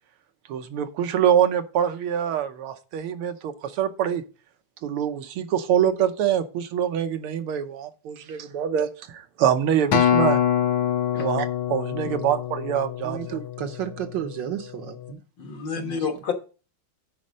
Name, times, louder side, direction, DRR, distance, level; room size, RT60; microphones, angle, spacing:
voice 1, 0.5-4.2 4.8-10.4 11.2-13.2, right 9 dB, 85° right, 1.8 m, -25 dB
Acoustic guitar, 9.9-14.3 15.0-15.1, left 10 dB, 80° left, 1.7 m, -25 dB
voice 2, 13.0-15.2 15.7-16.0, right 10 dB, 65° right, 1.3 m, -33 dB
voice 3, 15.4-16.3, left 6 dB, 60° left, 2.0 m, -29 dB
9.8 x 4.2 x 6.4 m
omnidirectional pair, 2.4 m